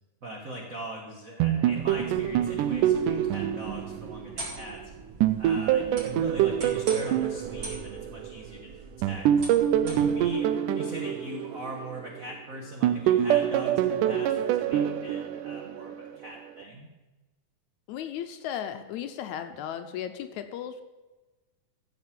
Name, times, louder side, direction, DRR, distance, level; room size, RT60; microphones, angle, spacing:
voice 1, 0.2-4.8 5.4-9.3 9.8-16.9, right 1 dB, 60° right, 0 dB, 0.8 m, -41 dB
sound 1, 1.4-4.7 5.2-8.5 9.0-12.3 12.8-16.1, right 10 dB, 85° right, 2.1 m, -26 dB
sound 2, 1.8-10.3, right 2 dB, 45° right, 3.9 m, -43 dB
voice 2, 17.9-20.8, left 9 dB, 80° left, 8 dB, 1.9 m, -35 dB
14.0 x 5.2 x 7.5 m, 1.2 s
omnidirectional pair, 3.7 m